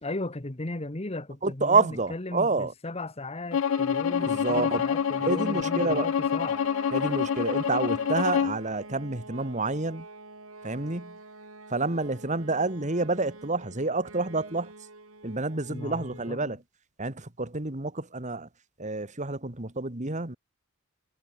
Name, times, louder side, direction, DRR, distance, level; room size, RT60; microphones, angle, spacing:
voice 1, 0.0-6.6 15.7-16.5, left 2 dB, 30° left, 1.3 m, -36 dB
voice 2, 1.4-2.7 4.2-4.8 5.2-6.1 6.9-10.1 10.6-11.2 11.7-14.7 15.2-16.6 17.0-18.5 18.8-20.4, right 3 dB, 35° right, 2.1 m, -28 dB
Bowed string instrument, 3.5-8.6, left 7 dB, 65° left, 0.3 m, -27 dB
sound 1, 3.6-16.4, right 3 dB, 75° right, 4.8 m, -45 dB
head